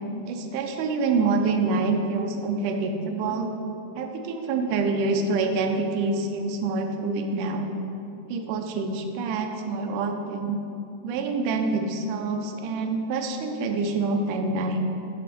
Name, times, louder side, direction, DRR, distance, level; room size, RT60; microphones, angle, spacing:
voice 1, 0.3-3.5 4.0-7.7 8.3-10.6 11.0-14.8, right 3 dB, 80° right, 4 dB, 2.1 m, -26 dB
6.5 x 5.7 x 5.1 m, 2.8 s
omnidirectional pair, 3.7 m